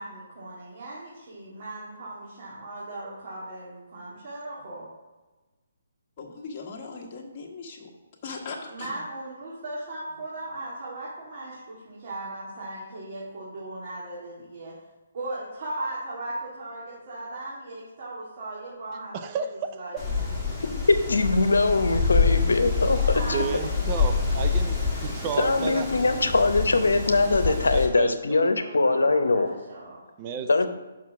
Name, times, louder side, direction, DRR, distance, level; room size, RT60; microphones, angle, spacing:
voice 1, 0.0-4.9 8.7-14.8 15.1-19.4 19.7-20.4 22.9-24.6 28.5-30.0, right 2 dB, 50° right, -7 dB, 2.4 m, -38 dB
voice 2, 6.2-7.9 8.2-9.0, left 4 dB, 35° left, -2 dB, 1.5 m, -39 dB
voice 3, 19.1-19.8 23.3-25.9 27.4-28.4 30.2-30.5, right 6 dB, 30° right, 7 dB, 0.5 m, -32 dB
Wind, 20.0-27.9, left 5 dB, 5° left, 1.8 m, -27 dB
voice 4, 20.9-23.4 25.4-29.5 30.5-30.7, left 3 dB, 85° left, 8 dB, 0.8 m, -22 dB
6.0 x 4.6 x 6.1 m, 1.2 s
hypercardioid pair, 150°, 0 cm